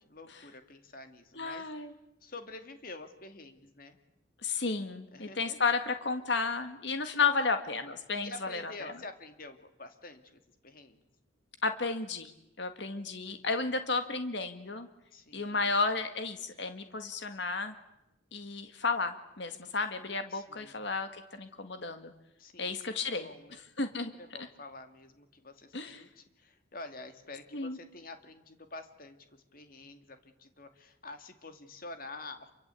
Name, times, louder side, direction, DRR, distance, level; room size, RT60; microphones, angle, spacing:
voice 1, 0.1-1.7 2.2-4.0 5.1-5.6 8.2-11.0 13.3-13.5 15.1-15.7 20.3-20.9 22.4-23.6 24.0-32.5, left 2 dB, 45° left, 7 dB, 2.5 m, -48 dB
voice 2, 1.4-1.9 4.4-8.9 11.6-12.3 12.6-14.9 15.3-17.7 18.3-22.1 22.6-23.3 23.8-24.1 24.4-24.5 25.7-26.0 27.5-27.8, left 4 dB, 60° left, 8 dB, 1.9 m, -32 dB
28.0 x 24.5 x 8.4 m, 0.87 s
head